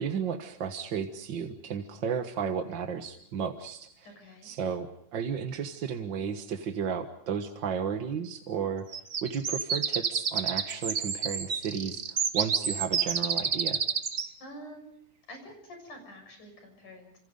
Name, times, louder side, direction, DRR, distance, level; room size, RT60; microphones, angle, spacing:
voice 1, 0.0-4.1 4.4-8.9 9.2-13.9, right 7 dB, 50° right, 7 dB, 1.6 m, -33 dB
voice 2, 4.0-4.5 14.4-14.9 15.3-17.2, equal, 75° left, 5 dB, 8.1 m, -47 dB
sound 1, 8.9-14.3, right 6 dB, 80° right, 0.7 m, -29 dB
29.5 x 27.5 x 5.3 m, 0.65 s
omnidirectional pair, 3.6 m